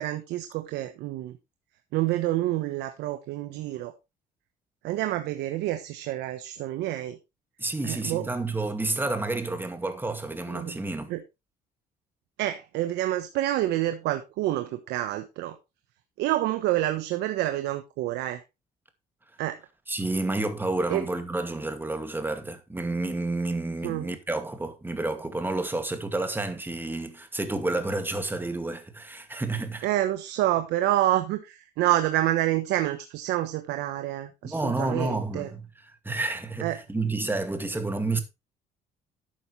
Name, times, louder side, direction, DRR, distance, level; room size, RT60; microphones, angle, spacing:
voice 1, 0.0-1.3 1.9-3.9 4.8-7.2 7.8-8.3 10.5-10.7 11.1-11.2 12.4-15.6 16.2-18.4 19.4-19.6 20.9-21.0 23.8-24.1 29.8-35.5 36.6-36.8, right 14 dB, 85° right, 1.2 m, -28 dB
voice 2, 7.6-11.1 19.9-29.9 34.4-38.2, right 2 dB, 10° right, 2.3 m, -30 dB
12.0 x 8.8 x 3.3 m
cardioid pair, 110°, 17 cm